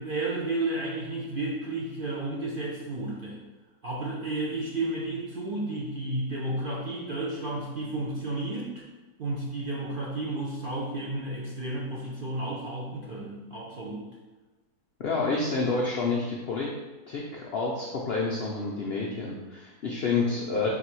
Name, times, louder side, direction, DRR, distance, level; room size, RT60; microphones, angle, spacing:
voice 1, 0.0-3.4 3.8-8.8 9.2-14.0 20.6-20.7, right 2 dB, 50° right, -5 dB, 0.6 m, -32 dB
voice 2, 15.0-16.7 17.1-20.7, left 4 dB, 90° left, -3 dB, 0.5 m, -29 dB
4.0 x 2.7 x 4.4 m, 1.2 s
omnidirectional pair, 1.7 m